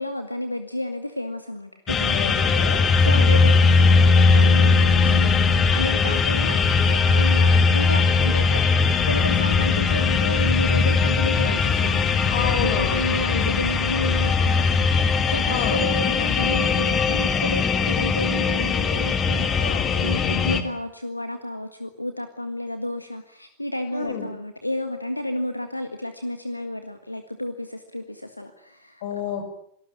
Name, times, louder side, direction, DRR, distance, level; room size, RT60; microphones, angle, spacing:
voice 1, 0.0-2.3 3.0-8.6 9.1-19.7 20.0-29.0, left 1 dB, 85° left, 8 dB, 1.7 m, -31 dB
sound 1, 1.9-20.6, left 4 dB, 25° left, 2.7 m, -19 dB
voice 2, 2.1-3.5 12.3-13.6 15.5-15.8 19.6-19.9 23.9-24.3 29.0-29.5, left 7 dB, 55° left, 8 dB, 5.8 m, -30 dB
27.5 x 18.5 x 9.0 m, 0.71 s
figure-of-eight pair, 90°, 0 cm